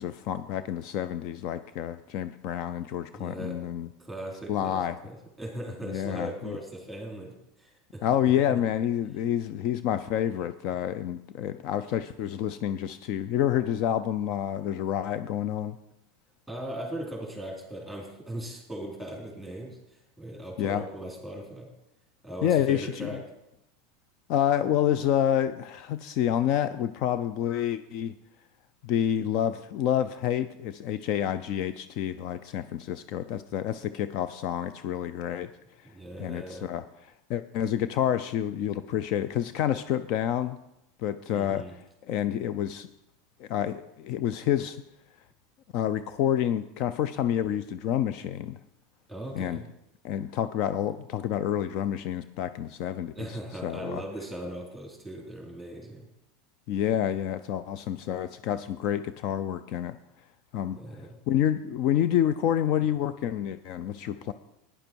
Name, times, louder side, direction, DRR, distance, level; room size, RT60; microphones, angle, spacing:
voice 1, 0.0-3.9 4.5-5.0 5.8-6.6 8.0-15.8 20.6-20.8 22.4-23.2 24.3-28.1 28.8-35.5 36.2-36.8 37.3-40.6 41.0-42.9 43.4-44.8 45.7-48.6 49.4-49.6 50.0-54.0 56.7-60.0 60.5-60.8 61.3-64.3, left 10 dB, 55° left, 12 dB, 0.5 m, -28 dB
voice 2, 3.1-3.6 4.0-8.0 8.5-8.6 16.5-19.8 20.2-21.7 22.2-23.2 35.9-36.7 41.3-41.7 49.1-49.6 53.2-56.1 60.8-61.1, right 1 dB, ahead, 0 dB, 3.8 m, -39 dB
11.5 x 10.0 x 4.6 m, 0.85 s
supercardioid pair, 120°, 0 cm